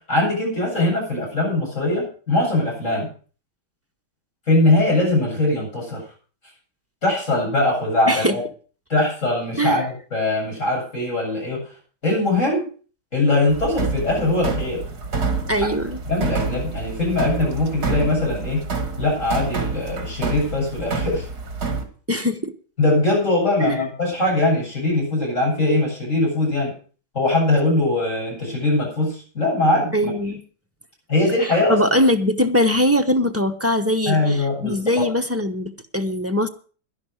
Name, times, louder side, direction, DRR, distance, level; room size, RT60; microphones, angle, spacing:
voice 1, 0.1-3.1 4.5-6.0 7.0-8.4 8.9-11.6 12.0-12.7 13.1-14.8 16.1-18.6 19.0-21.2 22.8-26.7 27.1-30.1 31.1-31.8 34.1-34.8, left 2 dB, 45° left, -3 dB, 8.4 m, -21 dB
voice 2, 8.1-8.4 9.6-9.9 15.5-16.0 22.1-22.5 23.6-23.9 29.9-30.4 31.7-36.5, left 1 dB, 15° right, 5 dB, 0.6 m, -21 dB
sound 1, 13.5-21.8, right 4 dB, 65° right, 2.5 m, -27 dB
11.5 x 11.0 x 6.3 m, 0.40 s
omnidirectional pair, 1.8 m